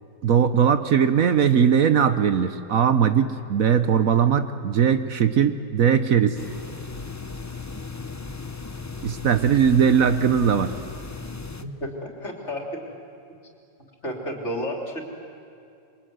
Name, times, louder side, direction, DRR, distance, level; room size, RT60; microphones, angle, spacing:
voice 1, 0.2-6.4 9.0-10.7, right 7 dB, 60° right, 10 dB, 1.2 m, -20 dB
sound 1, 6.4-11.6, left 4 dB, 15° left, 0.6 m, -36 dB
voice 2, 11.6-12.8 14.0-15.0, equal, 45° left, 1 dB, 3.7 m, -31 dB
27.0 x 23.0 x 9.4 m, 2.5 s
omnidirectional pair, 1.7 m